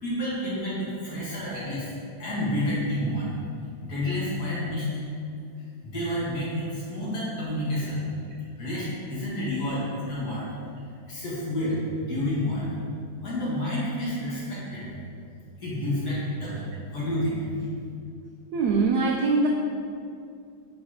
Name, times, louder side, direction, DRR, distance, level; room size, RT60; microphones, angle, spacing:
voice 1, 0.0-1.9 2.2-3.3 3.8-4.9 5.8-8.0 8.6-10.4 11.1-12.6 13.2-14.9 15.6-17.4, left 1 dB, 50° left, -8 dB, 2.0 m, -29 dB
voice 2, 18.5-19.5, right 4 dB, 75° right, 0 dB, 0.9 m, -22 dB
4.8 x 4.2 x 4.8 m, 2.5 s
omnidirectional pair, 2.2 m